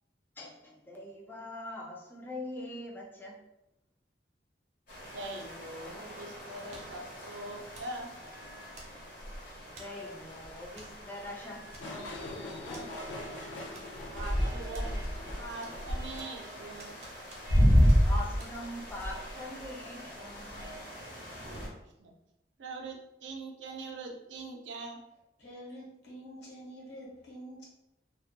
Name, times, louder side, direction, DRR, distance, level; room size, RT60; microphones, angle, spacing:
voice 1, 0.4-3.4 9.8-12.9 18.0-21.7, left 1 dB, 10° left, -2 dB, 0.4 m, -43 dB
sound 1, 4.9-21.7, equal, 50° left, 0.7 m, -32 dB
voice 2, 5.0-8.1 14.1-17.0 22.0-22.1 22.6-25.0, right 2 dB, 90° right, 1 dB, 0.5 m, -42 dB
sound 2, 6.7-7.1 7.7-8.0 8.7-9.2 9.8-10.0 10.8-11.0 11.2-11.3 11.7-12.2 12.7-12.9 13.7-14.2 14.7-15.3 15.6-16.4 16.8-17.6 17.9-18.0 18.4-18.5, right 2 dB, 40° right, 0.5 m, -52 dB
sound 3, 11.8-17.1, left 2 dB, 90° left, 0.4 m, -44 dB
voice 3, 25.4-27.6, equal, 70° left, -4 dB, 1.0 m, -47 dB
2.2 x 2.1 x 2.7 m, 0.87 s
head